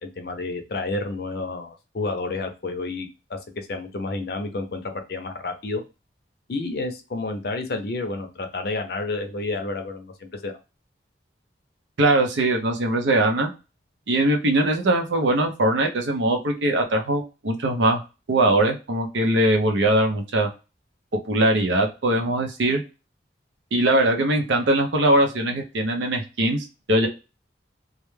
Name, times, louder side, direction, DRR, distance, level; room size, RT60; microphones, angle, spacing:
voice 1, 0.0-5.8 6.5-10.5, left 3 dB, 55° left, 6 dB, 0.5 m, -30 dB
voice 2, 12.0-13.5 14.1-18.0 18.3-20.5 21.3-22.8 23.7-27.1, right 1 dB, 80° right, 3 dB, 0.6 m, -21 dB
2.3 x 2.1 x 3.1 m, 0.29 s
head